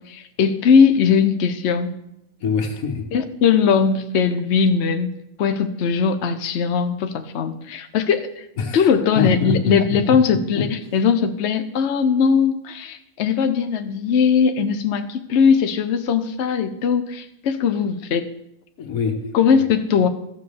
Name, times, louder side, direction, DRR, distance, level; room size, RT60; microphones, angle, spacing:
voice 1, 0.0-2.0 3.1-5.1 5.4-8.4 8.7-18.3 19.3-20.1, left 6 dB, 60° left, 9 dB, 0.9 m, -19 dB
voice 2, 2.4-3.1 8.6-8.9 9.1-10.6 18.8-19.3, left 5 dB, 90° left, 5 dB, 1.8 m, -24 dB
14.0 x 4.8 x 7.1 m, 0.80 s
omnidirectional pair, 1.5 m